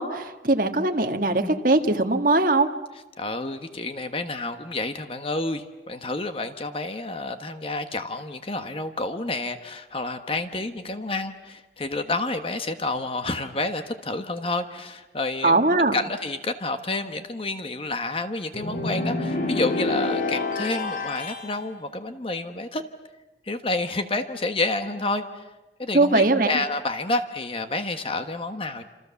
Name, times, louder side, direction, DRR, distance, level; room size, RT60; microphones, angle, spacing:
voice 1, 0.0-2.7 15.4-16.0 25.9-26.5, right 2 dB, 50° right, 5 dB, 1.7 m, -20 dB
voice 2, 3.2-15.6 15.9-22.8 23.4-25.5 25.8-28.8, left 2 dB, 30° left, 8 dB, 1.3 m, -29 dB
sound 1, 18.5-21.5, left 2 dB, 50° left, 2.2 m, -27 dB
28.5 x 27.5 x 7.1 m, 1.1 s
head